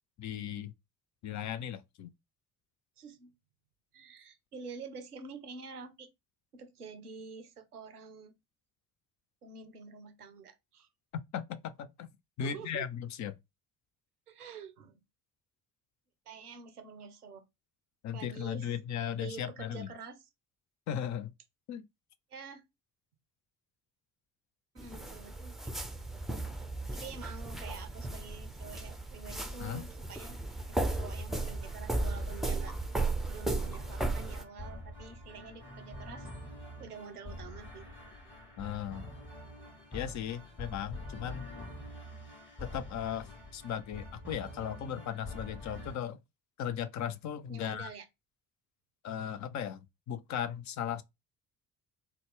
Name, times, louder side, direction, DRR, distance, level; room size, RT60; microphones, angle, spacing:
voice 1, 0.2-0.7 1.2-2.1 11.1-12.1 12.4-13.4 18.0-19.9 20.9-21.3 21.7-21.8 29.6-29.8 38.6-39.1 39.9-41.5 42.6-46.2 46.6-47.9 49.0-51.0, left 9 dB, 40° left, 0.5 m, -37 dB
voice 2, 3.0-3.3 3.9-6.1 6.5-8.3 9.4-10.9 12.4-12.9 14.3-15.0 16.3-17.4 18.1-18.7 19.2-20.3 22.3-22.6 24.7-25.7 26.9-30.4 30.9-32.7 33.3-36.3 36.8-37.9 47.5-48.1, right 5 dB, 90° right, 0.6 m, -47 dB
sound 1, 24.8-34.4, right 2 dB, ahead, 0.6 m, -35 dB
sound 2, 31.3-46.0, left 1 dB, 25° left, 2.1 m, -46 dB
3.8 x 2.2 x 3.5 m
figure-of-eight pair, 45°, 44 cm